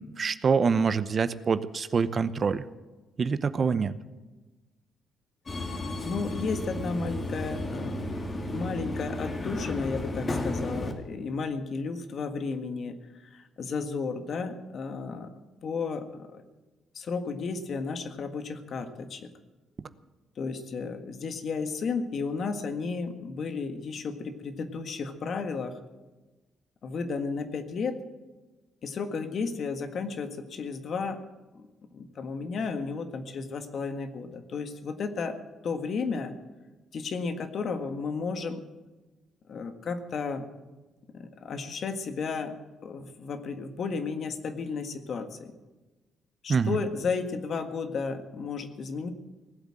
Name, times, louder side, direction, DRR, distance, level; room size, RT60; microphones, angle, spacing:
voice 1, 0.0-2.6 3.2-3.9 46.5-46.8, right 5 dB, 40° right, 14 dB, 0.8 m, -25 dB
Subway metro underground, 5.5-10.9, left 1 dB, 35° left, 2.4 m, -33 dB
voice 2, 6.0-8.1 8.5-13.0 13.2-15.3 15.6-16.4 17.0-19.3 20.4-25.8 26.8-28.0 28.8-31.2 31.5-31.7 31.9-35.4 35.6-36.4 36.9-38.7 39.5-40.5 41.1-42.6 42.8-45.5 46.4-49.1, left 4 dB, 55° left, 8 dB, 1.7 m, -33 dB
19.0 x 8.1 x 8.8 m, 1.2 s
cardioid pair, 90°, 0 cm